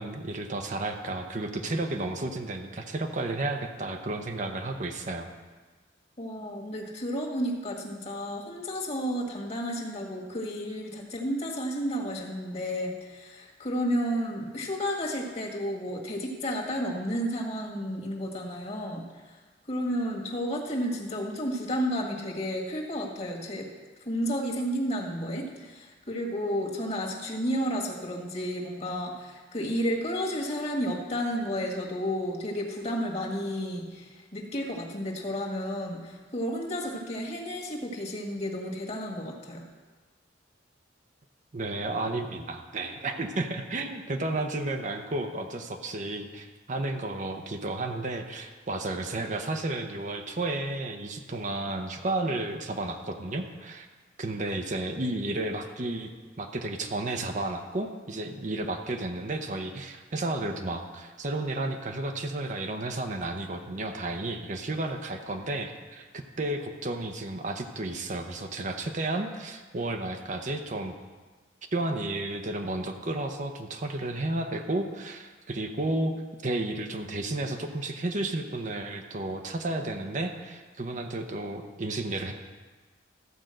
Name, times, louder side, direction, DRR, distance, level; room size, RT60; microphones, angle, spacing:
voice 1, 0.0-5.3 41.5-53.9 54.2-56.1 56.4-70.9 71.7-76.1 76.4-82.3, right 2 dB, 40° right, 4 dB, 0.7 m, -32 dB
voice 2, 6.2-19.3 19.7-23.7 24.1-39.6, equal, 35° left, -1 dB, 1.7 m, -32 dB
13.5 x 5.2 x 7.6 m, 1.4 s
head